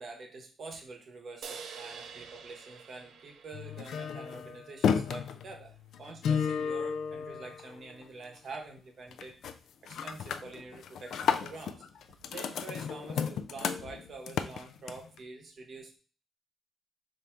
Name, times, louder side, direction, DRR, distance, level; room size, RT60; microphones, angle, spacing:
voice 1, 0.0-9.4 10.0-16.0, right 3 dB, 45° right, 3 dB, 0.9 m, -46 dB
sound 1, 1.4-4.9, right 6 dB, 70° right, 0.4 m, -47 dB
sound 2, 3.5-8.0 8.4-8.8 9.1-9.5 9.9-15.2, left 7 dB, 70° left, 0.3 m, -33 dB
3.5 x 2.6 x 4.3 m, 0.38 s
cardioid pair, 150°, 0 cm